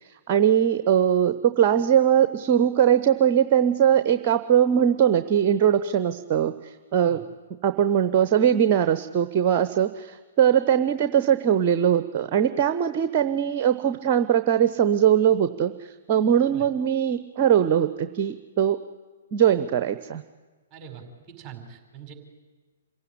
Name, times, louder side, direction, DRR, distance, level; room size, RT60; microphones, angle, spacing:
voice 1, 0.3-7.2 7.6-18.8 19.3-20.2, right 9 dB, 35° right, 10 dB, 0.8 m, -21 dB
voice 2, 20.7-22.1, right 8 dB, 15° right, 3 dB, 5.0 m, -43 dB
27.0 x 16.5 x 9.9 m, 1.4 s
figure-of-eight pair, 120°, 0 cm